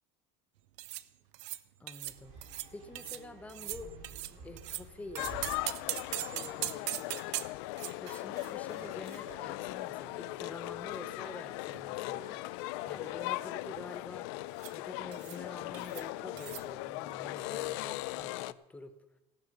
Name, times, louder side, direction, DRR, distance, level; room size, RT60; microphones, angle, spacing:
sound 1, 0.8-1.0 1.3-1.6 1.9-2.2 2.4-2.7 2.9-3.2 3.5-4.8 5.1-9.8 10.1-10.2 11.0-11.8 12.1-12.4 12.7-13.1 14.6-14.8 15.1-15.4 15.7-16.0 16.4-16.6, right 17 dB, 85° right, 0.7 m, -41 dB
voice 1, 1.8-3.9 4.4-5.3 6.3-6.9 8.0-12.4 12.9-14.3 14.7-19.0, left 2 dB, 10° left, 8 dB, 0.9 m, -47 dB
sound 2, 2.0-6.9, right 3 dB, 50° right, 4.6 m, -52 dB
sound 3, 5.2-18.5, left 19 dB, 70° left, 0.5 m, -39 dB
15.5 x 9.5 x 6.6 m, 0.99 s
cardioid pair, 155°, 15 cm